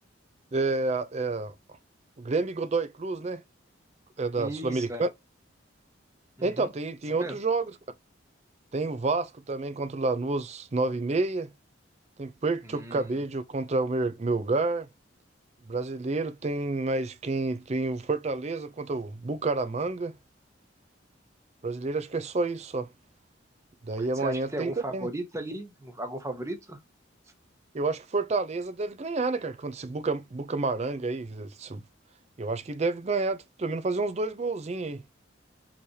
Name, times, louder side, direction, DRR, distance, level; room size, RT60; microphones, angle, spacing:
voice 1, 0.5-1.5 2.2-3.4 4.2-5.1 6.4-7.7 8.7-11.5 12.2-14.9 15.7-20.1 21.6-22.9 23.8-25.1 27.7-31.8 32.4-35.0, right 3 dB, 35° right, 0.5 m, -29 dB
voice 2, 4.4-5.0 6.4-6.7 7.1-7.4 12.6-13.0 24.0-26.8, right 1 dB, 15° right, 1.0 m, -36 dB
4.9 x 3.2 x 2.8 m
head